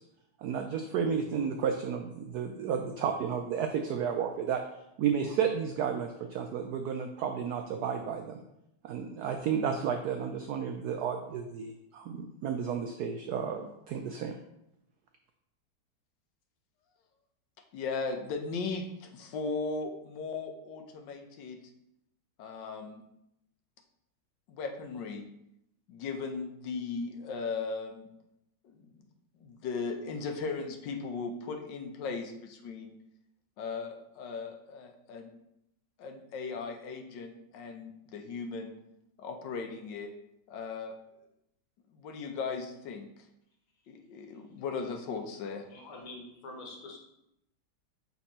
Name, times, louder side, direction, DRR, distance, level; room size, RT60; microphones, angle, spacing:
voice 1, 0.4-4.6 5.0-8.4 8.8-14.4, right 7 dB, 75° right, 5 dB, 0.9 m, -32 dB
voice 2, 17.7-21.6 22.4-23.0 24.5-25.2 25.9-28.1 28.6-29.0 29.4-33.0 33.6-35.3 36.0-38.7 39.2-40.1 40.5-40.9 41.9-43.1 43.9-45.6, left 4 dB, 70° left, 4 dB, 1.3 m, -37 dB
voice 3, 45.7-47.0, left 2 dB, 90° left, -1 dB, 2.1 m, -45 dB
7.1 x 3.4 x 4.2 m, 0.82 s
omnidirectional pair, 2.2 m